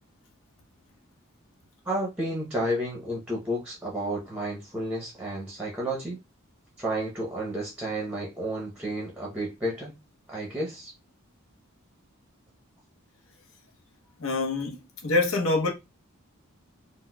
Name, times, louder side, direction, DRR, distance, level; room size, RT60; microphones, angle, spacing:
voice 1, 1.8-6.2 6.8-9.9 10.3-10.9, right 1 dB, 5° right, 0.7 m, -31 dB
voice 2, 14.2-15.7, left 2 dB, 70° left, 0.8 m, -26 dB
4.1 x 2.1 x 2.2 m
head